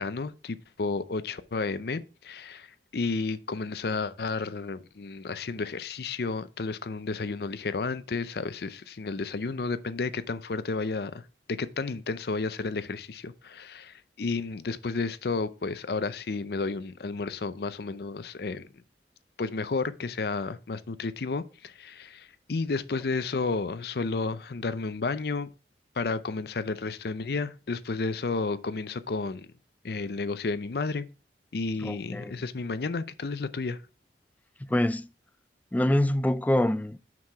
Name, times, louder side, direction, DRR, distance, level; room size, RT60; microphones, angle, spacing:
voice 1, 0.0-18.7 19.4-25.5 26.0-29.5 29.8-31.1 31.5-33.8, left 4 dB, 60° left, 0.5 m, -32 dB
voice 2, 31.8-32.4 34.7-35.1 35.7-37.0, left 1 dB, 10° left, 0.3 m, -25 dB
5.9 x 4.8 x 5.6 m
head